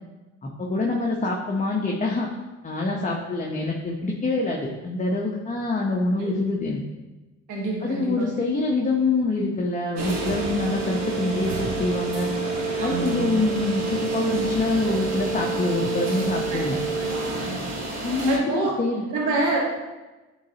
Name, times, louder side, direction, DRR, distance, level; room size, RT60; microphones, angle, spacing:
voice 1, 0.4-2.3 2.6-6.8 7.8-12.3 12.8-16.8 18.0-19.0, left 3 dB, 25° left, -2 dB, 0.9 m, -25 dB
voice 2, 7.5-8.3 12.8-13.3 16.5-16.6 17.3-17.6 18.3-18.7 19.1-19.6, right 3 dB, 80° right, -3 dB, 1.6 m, -27 dB
sound 1, 10.0-18.4, right 3 dB, 60° right, 1.4 m, -28 dB
10.5 x 3.9 x 2.8 m, 1.2 s
cardioid pair, 90°, 30 cm